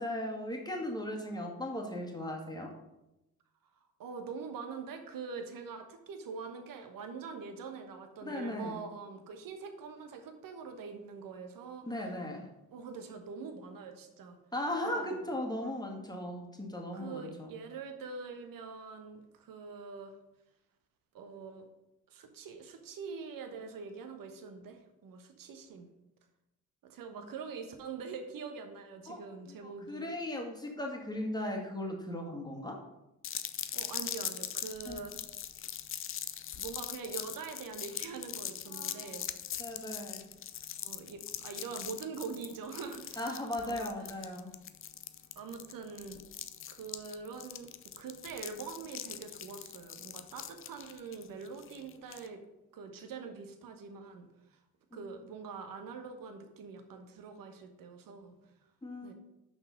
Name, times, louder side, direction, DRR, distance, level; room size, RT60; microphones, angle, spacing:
voice 1, 0.0-2.7 8.2-8.8 11.8-12.5 14.5-17.5 27.1-27.2 29.1-29.2 29.6-32.8 34.9-35.0 38.7-39.2 39.6-40.2 43.2-44.5 54.9-55.0 58.8-59.1, left 1 dB, 10° left, 0 dB, 1.9 m, -37 dB
voice 2, 4.0-11.9 12.7-14.4 14.8-15.2 16.9-20.1 21.1-21.7 22.1-25.9 26.8-30.1 33.7-35.2 36.5-39.6 40.8-43.9 45.3-46.2 46.7-52.4 52.7-54.6 54.9-58.4 59.0-59.1, right 5 dB, 50° right, 6 dB, 1.3 m, -44 dB
sound 1, 33.2-52.3, left 10 dB, 30° left, 0.5 m, -41 dB
6.2 x 6.2 x 5.2 m, 0.93 s
figure-of-eight pair, 45°, 44 cm